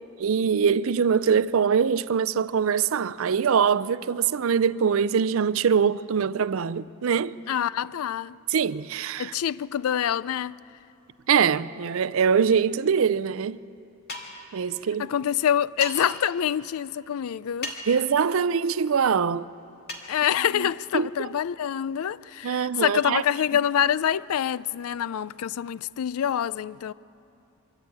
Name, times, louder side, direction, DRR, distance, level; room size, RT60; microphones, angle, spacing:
voice 1, 0.2-7.3 8.5-9.3 11.3-13.6 14.5-15.1 17.9-19.5 20.6-20.7 20.9-21.1 22.4-23.2, right 6 dB, 65° right, 0.4 m, -23 dB
voice 2, 7.5-8.4 9.2-10.6 15.0-17.7 20.1-26.9, left 9 dB, 80° left, 0.4 m, -26 dB
sound 1, 14.1-14.4 15.8-16.0 17.6-18.0 19.9-20.1, left 2 dB, 45° left, 2.4 m, -34 dB
24.0 x 14.0 x 8.6 m
head